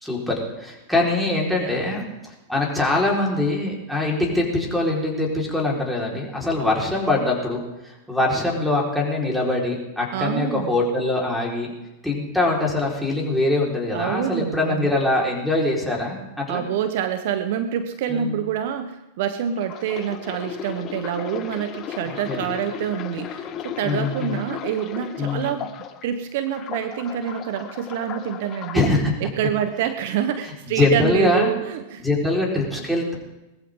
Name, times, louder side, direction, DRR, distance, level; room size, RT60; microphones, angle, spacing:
voice 1, 0.0-2.1 2.5-11.7 12.0-16.6 18.1-18.3 22.0-22.4 23.8-24.4 25.2-25.5 28.7-29.1 30.7-31.5 32.0-33.1, left 2 dB, ahead, -4 dB, 4.8 m, -23 dB
voice 2, 1.5-1.9 10.1-10.8 13.9-14.9 16.5-25.7 26.0-28.9 29.2-32.0, right 9 dB, 65° right, 9 dB, 1.1 m, -27 dB
sound 1, 19.6-26.1 26.5-28.9 29.6-29.8, left 9 dB, 35° left, 1.3 m, -35 dB
20.0 x 14.5 x 3.9 m, 1.0 s
hypercardioid pair, 105°, 0 cm